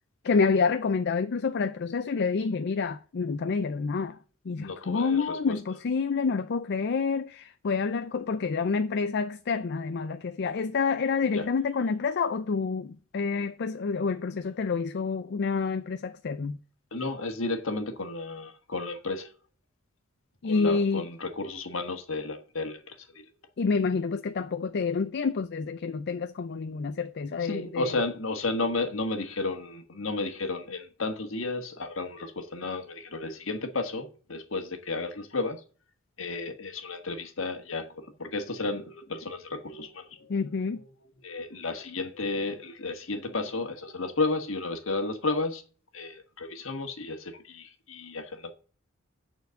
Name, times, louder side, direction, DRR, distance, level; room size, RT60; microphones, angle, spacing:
voice 1, 0.2-4.2 4.5-16.6 20.4-21.0 23.6-28.0 40.3-40.8, left 5 dB, 55° left, 0.5 m, -28 dB
voice 2, 4.6-5.6 11.3-11.5 16.9-19.3 20.4-23.2 27.4-35.6 36.2-40.4 40.7-40.9 41.2-45.6 45.9-48.5, left 3 dB, 70° left, 1.5 m, -33 dB
9.3 x 4.5 x 6.4 m
head